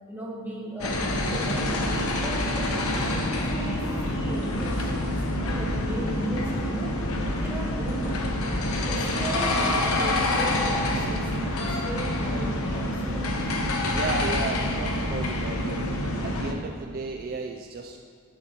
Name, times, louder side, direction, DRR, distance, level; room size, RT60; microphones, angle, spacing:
voice 1, 0.1-1.7 2.1-7.0 7.3-8.3 8.8-13.4, right 1 dB, 10° right, -4 dB, 1.3 m, -36 dB
sound 1, 0.8-16.5, left 1 dB, 90° left, 0.9 m, -27 dB
voice 2, 13.8-18.0, right 3 dB, 45° right, 3 dB, 0.4 m, -34 dB
10.5 x 9.2 x 3.0 m, 2.3 s
head